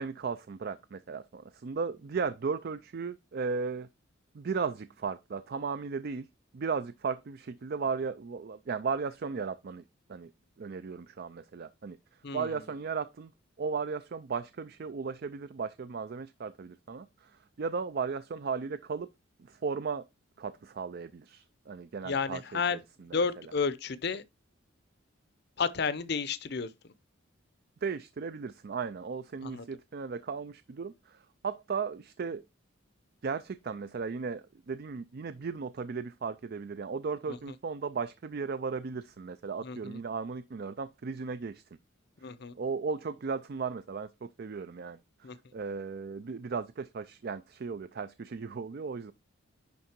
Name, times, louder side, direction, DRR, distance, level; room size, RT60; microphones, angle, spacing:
voice 1, 0.0-3.9 4.3-6.3 6.5-9.8 10.1-10.3 10.6-12.0 12.3-13.3 13.6-19.1 19.4-20.0 20.4-23.3 27.8-32.4 33.2-41.6 42.5-49.1, right 5 dB, 50° right, 0.4 m, -36 dB
voice 2, 12.2-12.6 22.0-22.8 23.1-24.2 25.6-26.7 29.4-29.6 37.3-37.4 39.6-40.0 42.2-42.5 45.2-45.4, left 5 dB, 55° left, 0.6 m, -32 dB
10.5 x 3.7 x 4.4 m
head